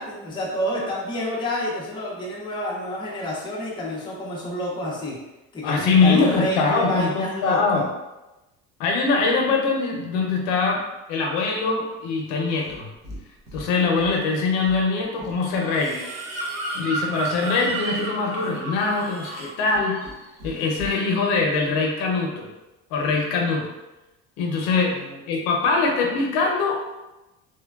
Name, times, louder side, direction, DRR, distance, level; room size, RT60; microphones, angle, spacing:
voice 1, 0.0-5.1 5.5-7.8 24.9-25.2, left 1 dB, 15° left, -5 dB, 0.5 m, -29 dB
voice 2, 5.6-7.8 8.8-10.8 11.1-12.9 13.5-16.0 16.7-20.0 20.4-22.5 22.9-23.7 24.4-24.9 25.3-27.0, left 4 dB, 80° left, 0 dB, 0.7 m, -22 dB
Livestock farm animals working animals, 12.6-13.2 13.5-14.2 14.5-20.1 20.4-20.9, right 2 dB, 75° right, 0.8 m, -38 dB
Bird vocalization bird call bird song, 16.0-19.5 19.8-20.2, right 2 dB, 55° right, 0.6 m, -32 dB
3.1 x 2.2 x 2.3 m, 1.0 s
cardioid pair, 155°, 31 cm